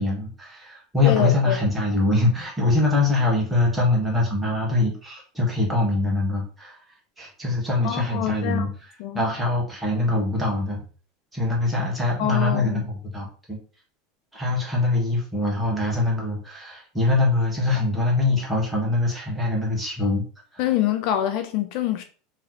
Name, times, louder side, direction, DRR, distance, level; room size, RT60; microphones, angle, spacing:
voice 1, 0.0-6.8 7.2-8.7 9.1-10.8 11.3-13.6 14.3-20.2 20.5-20.6, left 2 dB, 5° right, 1.3 m, -23 dB
voice 2, 1.0-1.6 7.8-8.7 9.0-9.2 12.2-12.8 20.6-22.0, left 11 dB, 50° left, 0.4 m, -25 dB
3.1 x 2.9 x 3.8 m
supercardioid pair, 160°, 0 cm